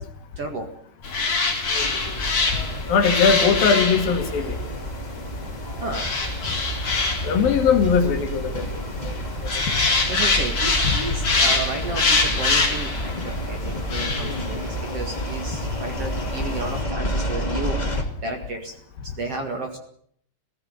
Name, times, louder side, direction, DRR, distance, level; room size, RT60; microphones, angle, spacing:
voice 1, 0.4-0.7 5.8-6.1 10.1-18.7 19.1-19.8, right 2 dB, 45° right, 4 dB, 2.4 m, -32 dB
sound 1, 1.0-16.8, left 3 dB, 35° left, 4.4 m, -26 dB
voice 2, 1.7-2.2 2.9-4.6 7.2-9.2 9.6-9.8 14.2-14.4, left 6 dB, 65° left, 6 dB, 3.6 m, -21 dB
sound 2, 1.7-18.0, right 1 dB, 15° left, 1.5 m, -30 dB
18.5 x 16.0 x 9.5 m, 0.65 s
omnidirectional pair, 4.8 m